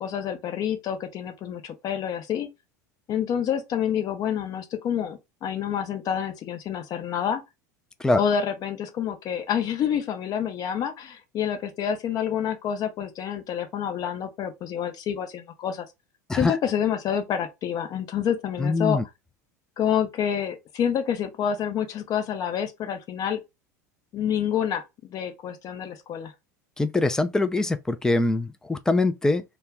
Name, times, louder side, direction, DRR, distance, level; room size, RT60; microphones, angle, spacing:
voice 1, 0.0-2.5 3.1-7.4 8.2-15.8 16.3-19.0 19.8-23.4 24.1-24.8 25.1-26.3, left 8 dB, 40° left, 0.7 m, -28 dB
voice 2, 18.6-19.0 26.8-29.4, left 2 dB, 5° left, 0.4 m, -23 dB
2.1 x 2.1 x 3.4 m
hypercardioid pair, 80°, 10 cm